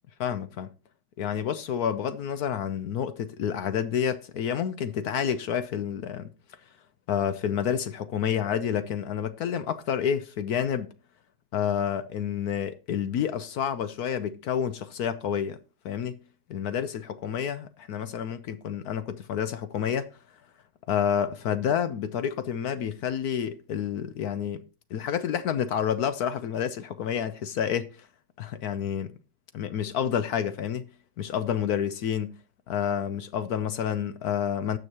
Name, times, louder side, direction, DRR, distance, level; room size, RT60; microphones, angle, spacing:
voice 1, 0.2-0.7 1.2-6.3 7.1-10.9 11.5-16.2 16.5-20.1 20.9-24.6 24.9-28.1 28.4-29.2 29.5-30.9 31.2-32.4 32.7-34.8, left 8 dB, 65° left, 0.9 m, -29 dB
18.5 x 6.5 x 2.9 m
omnidirectional pair, 2.2 m